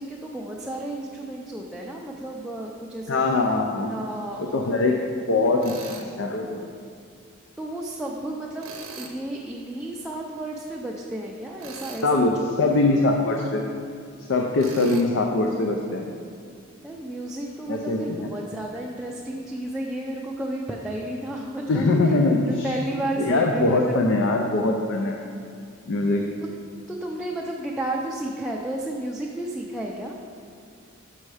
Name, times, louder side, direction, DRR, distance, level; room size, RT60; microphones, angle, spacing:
voice 1, 0.0-3.2 3.7-4.9 7.6-12.8 16.8-21.9 22.4-24.2 26.9-30.2, right 1 dB, 5° right, -3 dB, 0.4 m, -32 dB
voice 2, 3.1-3.9 4.4-5.0 5.3-6.6 12.0-13.6 14.3-16.0 17.7-18.3 21.7-22.7 23.2-25.2 25.9-26.2, left 2 dB, 60° left, 2 dB, 0.5 m, -22 dB
Tools, 5.6-6.1 8.6-9.2 11.6-12.1 14.6-15.1, right 4 dB, 80° right, 0.8 m, -40 dB
6.3 x 5.6 x 4.8 m, 2.3 s
head